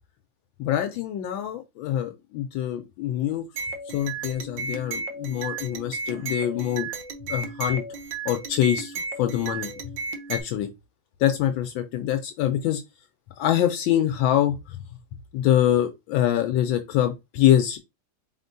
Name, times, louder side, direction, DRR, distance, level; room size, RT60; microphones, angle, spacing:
voice 1, 0.6-3.5 3.9-6.9 7.3-7.8 8.2-9.7 10.3-10.7 11.2-12.8 13.4-14.8 15.3-17.8, left 11 dB, 80° left, 1.3 m, -24 dB
sound 1, 3.6-10.4, right 4 dB, 75° right, 1.5 m, -34 dB
4.3 x 3.7 x 2.6 m
omnidirectional pair, 2.1 m